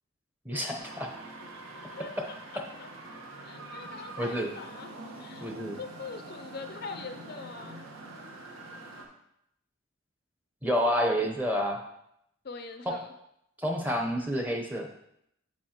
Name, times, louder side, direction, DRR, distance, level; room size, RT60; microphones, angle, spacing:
voice 1, 0.4-1.1 4.2-4.5 5.4-5.8 10.6-11.8 12.9-13.0 13.6-14.9, equal, 10° right, 2 dB, 0.8 m, -29 dB
sound 1, 0.8-9.1, right 2 dB, 70° right, 1.2 m, -45 dB
voice 2, 2.0-2.9 3.1-5.5 5.8-7.8 12.4-13.1, left 4 dB, 45° left, 7 dB, 0.4 m, -43 dB
7.3 x 7.3 x 2.9 m, 0.77 s
head